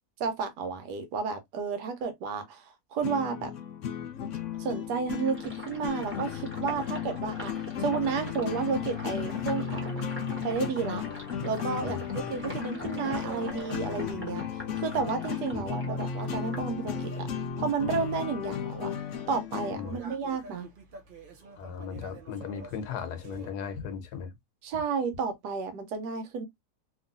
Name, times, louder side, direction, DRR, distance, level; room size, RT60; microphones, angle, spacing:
voice 1, 0.2-3.5 4.6-7.5 7.8-10.0 10.4-11.0 11.4-14.4 14.7-17.3 17.6-18.9 19.3-20.7 24.6-26.5, right 5 dB, 90° right, 1.3 m, -32 dB
sound 1, 3.0-20.0, left 8 dB, 60° left, 0.8 m, -35 dB
Sink (filling or washing), 5.1-17.4 17.7-19.2, right 1 dB, 10° right, 0.8 m, -44 dB
sound 2, 10.4-23.5, right 4 dB, 55° right, 0.6 m, -49 dB
voice 2, 21.6-24.3, left 6 dB, 85° left, 1.3 m, -37 dB
2.9 x 2.6 x 2.5 m
omnidirectional pair, 1.7 m